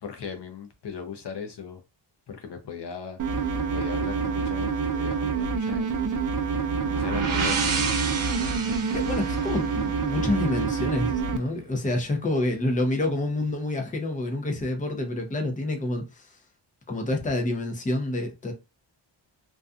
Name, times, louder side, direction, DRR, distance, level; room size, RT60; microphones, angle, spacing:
voice 1, 0.0-1.8 2.3-3.2 3.7-5.9 6.9-7.7, left 6 dB, 60° left, 0.7 m, -37 dB
sound 1, 3.2-11.4, right 5 dB, 40° right, 0.5 m, -27 dB
sound 2, 6.7-10.5, right 5 dB, 80° right, 0.8 m, -30 dB
voice 2, 8.9-16.3 16.9-18.5, left 1 dB, 15° left, 0.6 m, -28 dB
2.6 x 2.3 x 2.4 m
wide cardioid pair, 95°, 48 cm